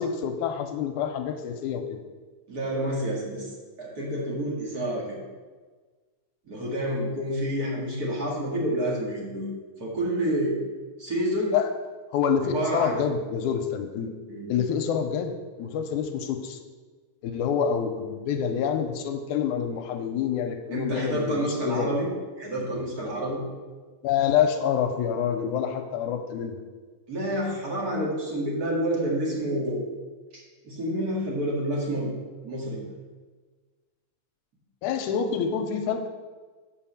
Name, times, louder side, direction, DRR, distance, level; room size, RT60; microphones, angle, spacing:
voice 1, 0.0-2.0 11.5-11.7 12.1-14.1 14.5-16.6 17.2-22.0 24.0-26.6 34.8-36.1, left 7 dB, 85° left, 6 dB, 2.0 m, -27 dB
voice 2, 2.5-3.5 3.8-5.2 6.5-9.5 9.8-10.5 11.0-11.5 12.4-13.0 14.3-14.5 20.7-22.1 22.4-23.4 27.1-29.9 30.3-32.8, right 1 dB, 35° right, -3 dB, 1.9 m, -28 dB
7.4 x 4.8 x 7.2 m, 1.4 s
omnidirectional pair, 3.6 m